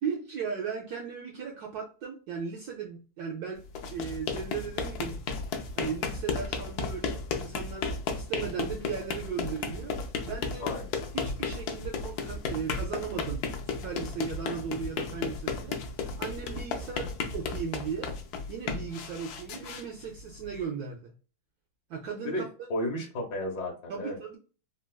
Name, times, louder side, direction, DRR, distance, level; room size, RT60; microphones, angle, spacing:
voice 1, 0.0-3.6 3.9-5.2 5.8-10.0 10.2-10.7 11.1-15.8 16.2-18.2 18.5-21.1 21.9-22.7 23.9-24.4, right 6 dB, 85° right, 0.8 m, -37 dB
sound 1, 3.6-20.6, left 4 dB, 80° left, 0.8 m, -34 dB
voice 2, 10.6-10.9 22.2-22.4 22.7-24.2, left 1 dB, 65° left, 1.1 m, -33 dB
3.7 x 2.2 x 2.3 m
omnidirectional pair, 2.2 m